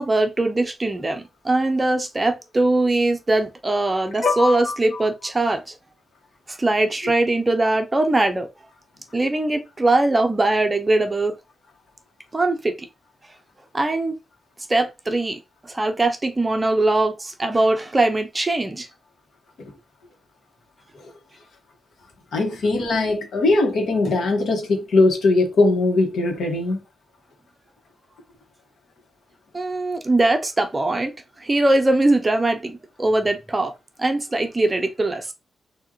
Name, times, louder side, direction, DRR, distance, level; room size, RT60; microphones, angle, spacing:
voice 1, 0.0-5.8 6.5-8.5 9.1-11.3 12.3-12.7 13.7-14.2 14.7-18.9 29.5-33.7 34.0-35.3, right 2 dB, 20° right, 0.6 m, -21 dB
voice 2, 4.2-4.7 19.6-19.7 22.3-26.8, left 2 dB, 70° left, 1.5 m, -20 dB
6.3 x 2.8 x 3.0 m
wide cardioid pair, 140°, 0 cm